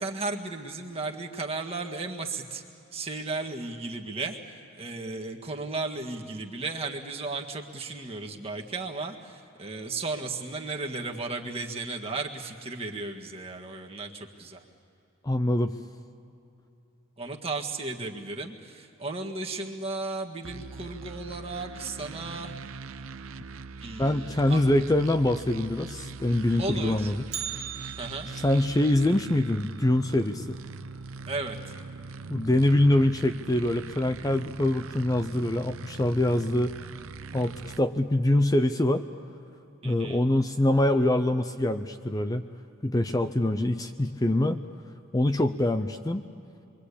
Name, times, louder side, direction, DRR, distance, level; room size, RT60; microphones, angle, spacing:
voice 1, 0.0-2.6 2.9-14.6 17.2-22.5 23.8-24.9 26.6-27.1 28.0-28.3 31.3-31.6 39.8-40.2, right 3 dB, 30° right, 1 dB, 1.7 m, -35 dB
voice 2, 15.2-15.7 24.0-27.2 28.3-30.6 32.3-36.7 37.3-39.0 39.8-42.4 42.8-44.6 45.1-46.2, left 1 dB, 15° left, 8 dB, 0.5 m, -24 dB
sound 1, 20.4-37.8, right 4 dB, 85° right, 0.7 m, -42 dB
Bell, 27.3-31.4 31.7-31.8 32.3-32.4 33.2-33.3 34.0-34.3 34.7-34.8, right 9 dB, 55° right, 1.8 m, -41 dB
27.0 x 23.0 x 8.5 m, 2.8 s
head